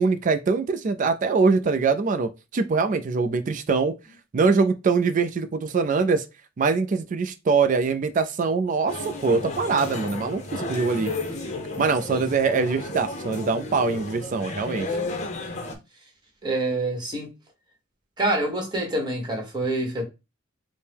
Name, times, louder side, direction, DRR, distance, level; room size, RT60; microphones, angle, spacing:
voice 1, 0.0-3.9 4.3-6.2 6.6-11.1 11.8-14.9, right 4 dB, 40° right, 0.4 m, -23 dB
sound 1, 8.9-15.8, left 2 dB, 35° left, 0.7 m, -33 dB
voice 2, 16.4-17.3 18.2-20.0, right 2 dB, 20° right, 1.2 m, -26 dB
4.4 x 2.1 x 3.4 m
head